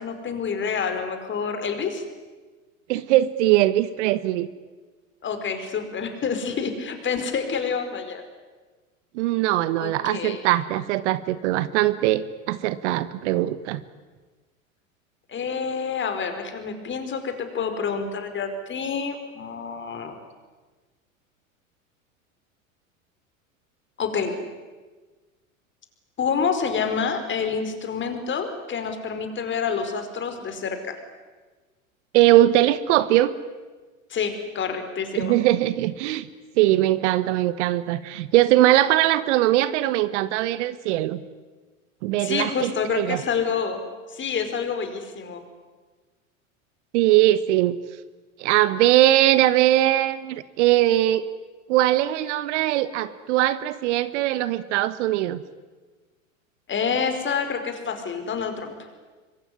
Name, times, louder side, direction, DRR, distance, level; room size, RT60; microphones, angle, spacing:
voice 1, 0.0-2.0 5.2-8.2 9.8-10.4 15.3-20.2 24.0-24.4 26.2-31.0 34.1-35.4 42.2-43.8 44.1-45.4 56.7-58.9, left 6 dB, 30° left, 7 dB, 4.9 m, -28 dB
voice 2, 2.9-4.5 9.1-13.8 32.1-33.3 35.1-36.3 36.6-41.2 42.0-43.2 46.9-47.7 48.4-51.3 51.7-55.4, right 15 dB, 55° right, 15 dB, 1.3 m, -21 dB
25.5 x 22.5 x 9.9 m, 1.3 s
hypercardioid pair, 95°, 41 cm